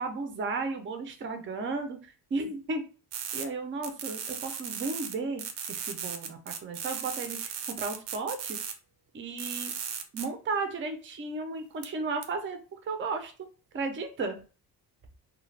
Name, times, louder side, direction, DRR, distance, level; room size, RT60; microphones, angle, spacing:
voice 1, 0.0-2.8 3.3-5.4 5.7-8.6 9.1-9.7 10.1-13.3 13.7-14.4, right 3 dB, 30° right, 6 dB, 0.5 m, -34 dB
sound 1, 3.1-3.4 3.8-5.1 5.4-8.7 9.4-10.2 11.8-11.9 12.2-12.3, right 7 dB, 80° right, 0.6 m, -36 dB
2.4 x 2.2 x 3.2 m, 0.35 s
cardioid pair, 120°, 41 cm